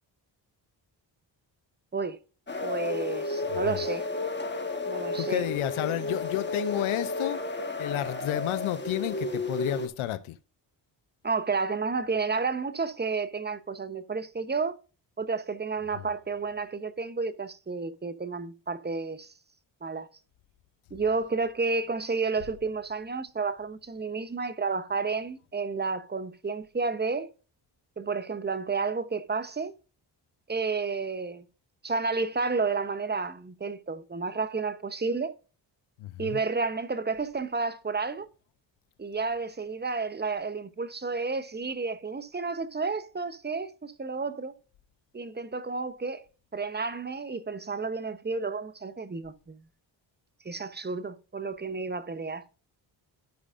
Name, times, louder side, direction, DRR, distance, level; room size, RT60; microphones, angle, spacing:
sound 1, 2.5-9.9, left 2 dB, 20° left, 1.4 m, -32 dB
voice 1, 2.6-4.1 4.9-5.5 11.2-14.8 15.2-19.3 19.8-20.1 20.9-27.3 28.0-29.7 30.5-31.5 31.8-35.3 36.2-38.3 39.0-44.6 45.1-46.2 46.5-49.6 50.4-52.4, right 4 dB, 20° right, 0.9 m, -31 dB
voice 2, 5.2-7.4 7.8-10.4 36.0-36.4, left 14 dB, 85° left, 0.7 m, -31 dB
13.0 x 4.9 x 2.5 m
supercardioid pair, 50°, 47 cm